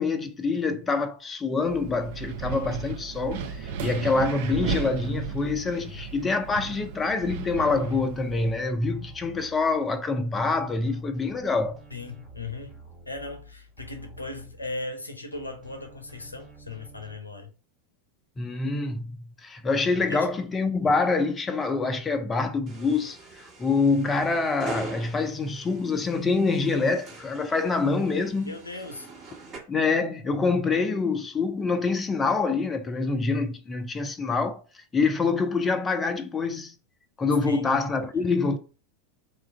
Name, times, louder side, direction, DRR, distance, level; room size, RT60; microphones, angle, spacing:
voice 1, 0.0-11.8 18.4-28.6 29.7-36.7 37.2-38.6, left 4 dB, 15° left, 0.4 m, -26 dB
Wind, 1.6-8.5, right 6 dB, 50° right, 0.4 m, -35 dB
sound 1, 7.3-10.1 10.4-15.0 15.3-17.2, right 3 dB, 10° right, 1.0 m, -49 dB
voice 2, 11.9-12.8 13.1-17.5 20.0-20.3 28.4-29.1 37.5-37.8, left 3 dB, 80° left, 0.6 m, -38 dB
sound 2, 22.7-29.6, right 3 dB, 30° right, 1.1 m, -43 dB
3.1 x 2.4 x 4.3 m
figure-of-eight pair, 90°, 0 cm